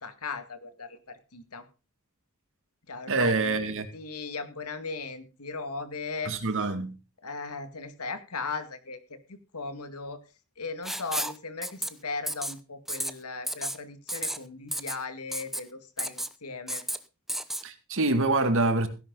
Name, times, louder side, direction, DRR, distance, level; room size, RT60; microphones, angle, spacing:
voice 1, 0.0-1.6 2.9-3.5 3.9-6.3 7.2-10.2 10.6-16.8, left 4 dB, 85° left, 2.1 m, -37 dB
voice 2, 3.1-3.9 6.3-6.9 17.6-18.9, right 2 dB, 65° right, 2.2 m, -25 dB
Writing, 10.8-11.4 11.6-11.9 12.3-12.5 12.9-13.1 13.5-13.8 14.1-14.4 14.7-15.0 15.3-15.6 16.0-16.3 16.7-17.0 17.3-17.6, right 1 dB, ahead, 0.8 m, -32 dB
16.5 x 11.0 x 4.0 m
head